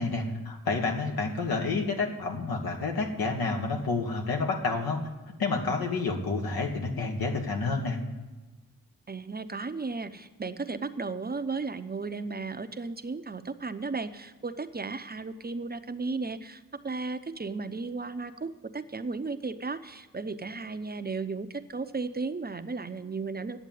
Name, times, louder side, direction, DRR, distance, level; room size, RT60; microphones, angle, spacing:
voice 1, 0.0-5.1 5.4-8.0, left 3 dB, 85° left, 2 dB, 1.5 m, -29 dB
voice 2, 9.1-23.6, right 4 dB, 25° right, 10 dB, 0.7 m, -35 dB
9.9 x 7.3 x 9.2 m, 1.2 s
cardioid pair, 55°, 35 cm